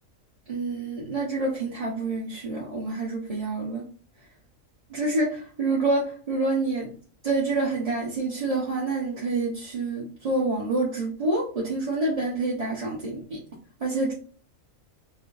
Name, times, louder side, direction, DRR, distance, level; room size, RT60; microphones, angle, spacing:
voice 1, 0.5-3.8 4.9-6.9 7.2-13.4 13.8-14.1, right 2 dB, 35° right, -6 dB, 0.8 m, -27 dB
5.4 x 2.1 x 2.4 m, 0.41 s
omnidirectional pair, 1.4 m